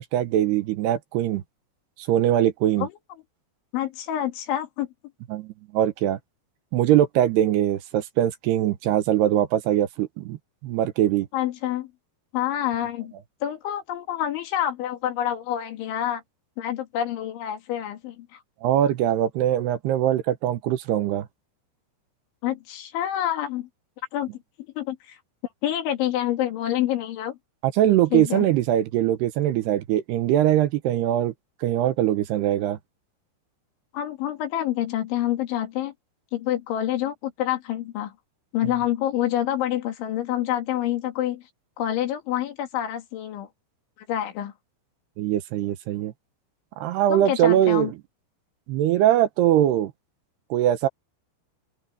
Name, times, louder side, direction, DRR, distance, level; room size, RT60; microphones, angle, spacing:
voice 1, 0.0-1.4 2.0-2.9 5.3-6.2 6.7-10.4 10.6-11.3 18.6-21.3 27.6-31.3 31.6-32.8 45.2-46.1 46.8-47.9 48.7-49.9 50.5-50.9, right 12 dB, 75° right, 2.8 m, -22 dB
voice 2, 3.7-4.9 11.3-11.9 12.3-13.1 13.4-16.2 16.6-18.4 22.4-23.7 24.1-24.3 24.8-25.2 25.6-27.4 28.1-28.5 33.9-35.9 36.3-38.1 38.5-41.4 41.8-43.5 44.1-44.5 47.1-47.9, left 12 dB, 85° left, 4.8 m, -27 dB
open air
omnidirectional pair, 5.3 m